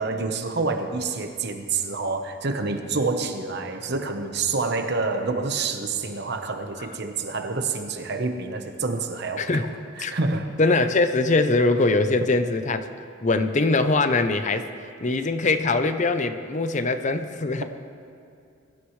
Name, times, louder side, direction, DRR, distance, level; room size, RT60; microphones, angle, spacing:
voice 1, 0.0-9.7 10.0-10.5, right 3 dB, 55° right, 6 dB, 1.1 m, -27 dB
voice 2, 9.4-9.7 10.0-10.1 10.6-12.9 13.2-14.7 15.0-17.6, left 3 dB, 35° left, 9 dB, 0.6 m, -22 dB
22.5 x 13.0 x 3.2 m, 2.4 s
head